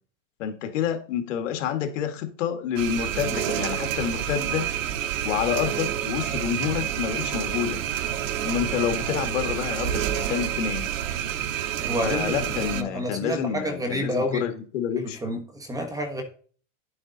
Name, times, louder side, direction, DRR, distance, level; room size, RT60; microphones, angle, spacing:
voice 1, 0.4-4.6 5.2-7.8 8.4-10.9 12.0-15.2, left 9 dB, 70° left, 7 dB, 1.9 m, -28 dB
sound 1, 2.8-12.8, right 10 dB, 80° right, 1.2 m, -28 dB
voice 2, 11.8-14.4 15.0-16.2, equal, 10° right, 5 dB, 1.3 m, -29 dB
10.5 x 7.7 x 4.0 m, 0.43 s
supercardioid pair, 160°, 39 cm